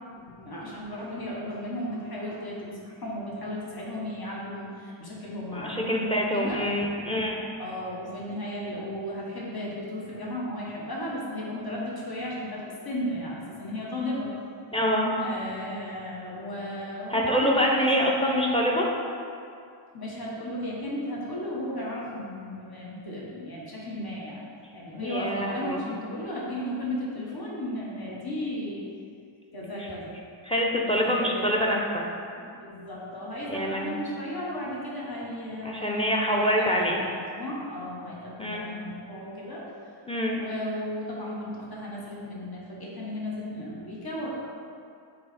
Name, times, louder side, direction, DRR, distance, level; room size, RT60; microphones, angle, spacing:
voice 1, 0.4-6.6 7.6-14.3 15.2-18.6 19.9-24.4 24.7-28.8 29.5-30.1 30.9-31.8 32.4-39.6 40.3-44.3, left 1 dB, 50° left, -5 dB, 1.3 m, -35 dB
voice 2, 5.5-7.5 14.7-15.1 17.1-18.9 25.0-25.8 30.4-32.1 33.5-34.0 35.5-37.0 38.4-38.6 40.1-40.4, equal, 10° left, -2 dB, 0.8 m, -26 dB
7.4 x 3.0 x 4.2 m, 2.4 s
wide cardioid pair, 50°, 48 cm